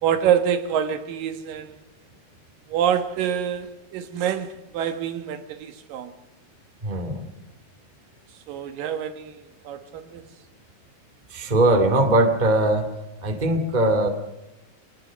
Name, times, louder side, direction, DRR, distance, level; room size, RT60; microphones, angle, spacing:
voice 1, 0.0-1.8 2.7-6.1 8.5-10.2, right 9 dB, 80° right, 3.0 m, -26 dB
voice 2, 6.8-7.2 11.3-12.9 13.2-14.1, right 1 dB, 15° right, 1.7 m, -20 dB
26.0 x 20.0 x 6.3 m
omnidirectional pair, 3.9 m